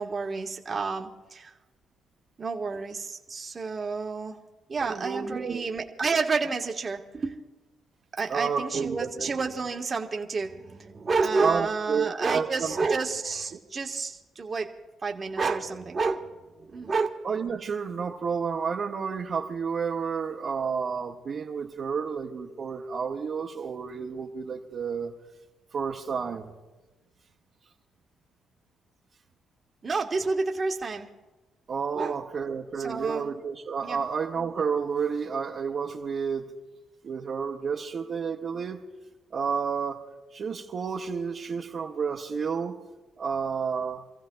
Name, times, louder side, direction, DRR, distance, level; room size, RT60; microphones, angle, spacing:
voice 1, 0.0-1.5 2.4-4.4 4.7-7.4 8.1-14.7 15.0-17.1 29.8-31.1 31.9-32.2 32.8-33.3 33.8-34.1, right 4 dB, 35° right, 2 dB, 1.3 m, -30 dB
voice 2, 4.8-5.7 8.3-9.3 11.4-12.7 13.5-13.6 17.2-25.1 25.7-26.5 31.7-36.5 37.0-38.8 39.3-40.0 40.3-42.8 43.2-44.0, right 6 dB, 55° right, -4 dB, 1.2 m, -30 dB
28.5 x 15.0 x 2.3 m, 1.1 s
cardioid pair, 90°, 0 cm